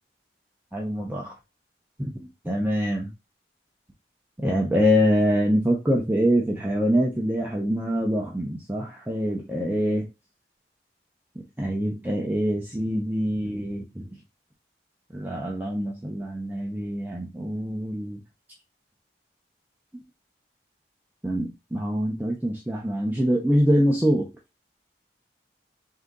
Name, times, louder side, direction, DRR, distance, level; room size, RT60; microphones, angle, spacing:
voice 1, 0.7-1.3 2.0-2.1 2.4-3.1 4.4-10.1 11.6-14.1 15.1-18.2 19.9-20.0 21.2-24.3, equal, 10° right, -1 dB, 0.5 m, -24 dB
3.7 x 2.8 x 3.5 m, 0.25 s
head